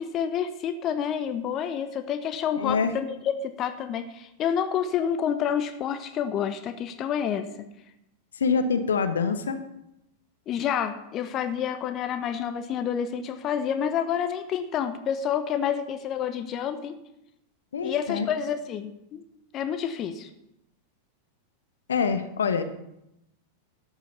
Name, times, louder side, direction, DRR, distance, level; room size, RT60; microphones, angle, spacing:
voice 1, 0.0-7.5 10.5-16.9 17.8-19.2 19.5-20.3, left 8 dB, 30° left, 9 dB, 0.9 m, -28 dB
voice 2, 2.6-2.9 8.3-9.6 17.7-18.3 21.9-22.6, left 5 dB, 65° left, 9 dB, 1.0 m, -25 dB
13.0 x 6.1 x 7.0 m, 0.85 s
figure-of-eight pair, 90°, 0 cm